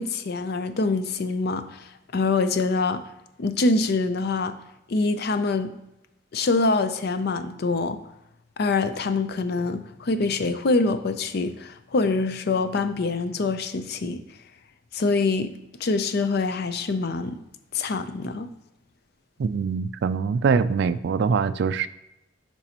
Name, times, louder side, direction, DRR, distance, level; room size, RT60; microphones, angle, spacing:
voice 1, 0.0-1.7 2.1-3.0 3.4-4.6 4.9-5.7 6.3-8.0 8.6-14.2 14.9-15.5 15.8-17.4 17.7-18.5, left 3 dB, 55° left, 0.5 m, -25 dB
voice 2, 19.4-21.9, right 5 dB, 60° right, 0.3 m, -23 dB
8.9 x 5.3 x 2.9 m
head